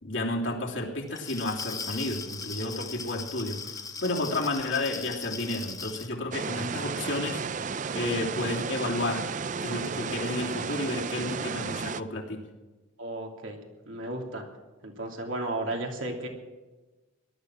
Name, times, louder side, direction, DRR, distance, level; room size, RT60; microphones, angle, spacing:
voice 1, 0.0-9.2 9.6-12.4, left 2 dB, 70° left, -2 dB, 3.1 m, -32 dB
Glass, 1.1-6.1, left 5 dB, 20° left, 0.8 m, -39 dB
sound 1, 6.3-12.0, right 5 dB, 40° right, 0.4 m, -33 dB
voice 2, 13.0-13.6 13.9-14.4 14.8-16.3, right 2 dB, 80° right, 1 dB, 3.0 m, -34 dB
18.5 x 12.0 x 6.2 m, 1.2 s
head